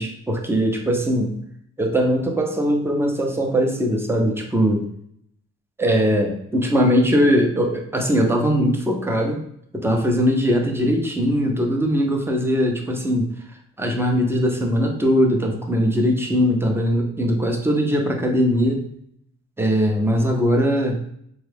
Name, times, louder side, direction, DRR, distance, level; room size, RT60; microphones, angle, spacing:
voice 1, 0.0-1.3 1.8-4.8 5.8-9.4 9.8-13.3 13.8-18.8 19.6-21.0, equal, 10° right, 2 dB, 0.6 m, -20 dB
3.0 x 2.3 x 3.3 m, 0.70 s
cardioid pair, 90°, 30 cm